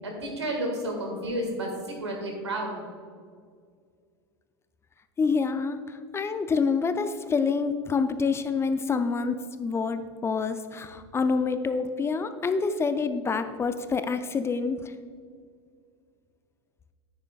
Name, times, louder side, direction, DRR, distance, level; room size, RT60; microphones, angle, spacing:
voice 1, 0.0-2.8, right 1 dB, 85° right, 1 dB, 1.8 m, -31 dB
voice 2, 5.2-14.9, left 5 dB, 20° left, 10 dB, 0.4 m, -27 dB
9.6 x 9.0 x 2.3 m, 2.1 s
figure-of-eight pair, 85°, 14 cm